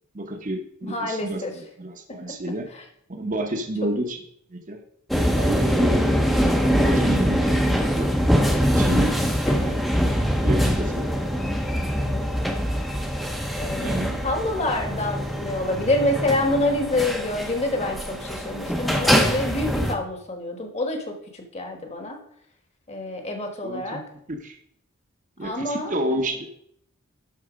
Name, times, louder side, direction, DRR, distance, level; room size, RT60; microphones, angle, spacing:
voice 1, 0.1-1.4 1.8-2.7 3.1-4.2 4.5-4.8 5.4-6.0 6.6-8.1 8.7-9.2 9.6-9.9 10.4-11.0 13.6-14.2 23.6-24.0 24.3-24.5 25.4-26.5, right 1 dB, 35° right, 5 dB, 0.9 m, -30 dB
voice 2, 0.8-1.5 2.3-2.4 2.7-2.8 9.4-9.7 12.0-12.3 13.6-22.2 22.9-24.0 25.4-26.2, left 2 dB, 30° left, 4 dB, 1.3 m, -27 dB
sound 1, 5.1-19.9, equal, ahead, 0.7 m, -23 dB
11.5 x 4.1 x 5.1 m, 0.70 s
head